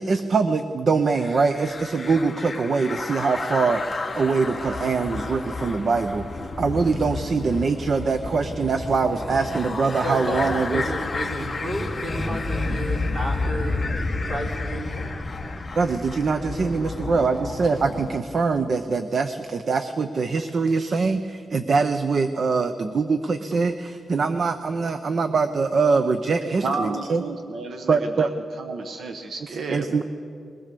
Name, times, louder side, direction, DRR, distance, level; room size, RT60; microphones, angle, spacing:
voice 1, 0.0-3.8 4.1-6.2 6.6-10.8 15.8-27.2 27.9-28.3 29.7-30.0, right 4 dB, 45° right, 9 dB, 0.7 m, -23 dB
sound 1, 1.2-18.2, left 3 dB, 25° left, 1.2 m, -31 dB
voice 2, 10.0-13.9 14.2-15.1, equal, 25° right, -1 dB, 3.7 m, -31 dB
voice 3, 26.6-28.3 28.6-30.0, right 3 dB, 60° right, 5 dB, 1.1 m, -31 dB
22.0 x 18.5 x 6.8 m, 2.6 s
wide cardioid pair, 155°, 0 cm